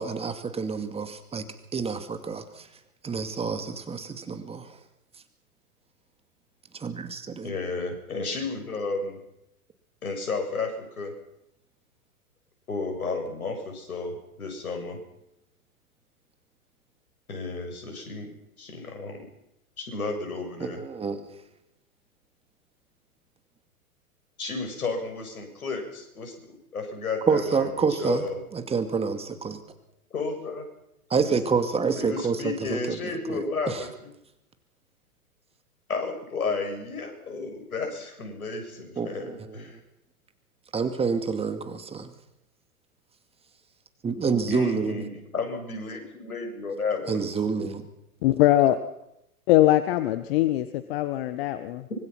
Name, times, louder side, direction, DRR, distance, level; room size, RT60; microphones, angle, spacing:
voice 1, 0.0-1.4 1.7-2.7 3.0-4.8 6.7-7.6 20.6-21.2 27.3-28.3 28.5-29.6 31.1-33.9 39.0-39.8 40.7-42.1 44.0-45.1 47.1-47.9, right 5 dB, 15° right, 8 dB, 2.4 m, -28 dB
voice 2, 7.4-9.2 10.0-10.7 11.0-11.1 12.7-14.1 14.4-15.0 17.3-18.3 18.6-19.2 19.8-20.8 24.4-26.3 26.7-27.6 28.0-28.3 30.1-30.6 31.2-31.3 32.0-33.9 35.9-39.7 44.5-45.0 45.3-47.2, left 4 dB, 75° left, 5 dB, 7.6 m, -32 dB
voice 3, 48.2-48.8 49.5-51.9, left 14 dB, 40° left, 11 dB, 1.6 m, -21 dB
25.0 x 24.5 x 6.0 m, 0.83 s
figure-of-eight pair, 105°, 44 cm